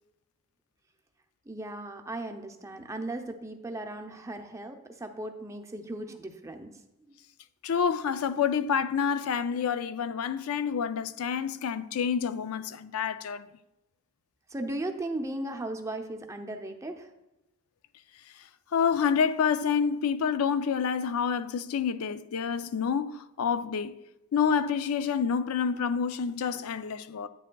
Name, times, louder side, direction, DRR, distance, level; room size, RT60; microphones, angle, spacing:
voice 1, 1.5-6.7 7.1-7.2 14.5-17.1, right 1 dB, 15° right, 0.5 m, -37 dB
voice 2, 7.6-13.5 18.7-23.9 24.3-27.3, left 7 dB, 80° left, 0.4 m, -28 dB
9.9 x 8.7 x 2.3 m
head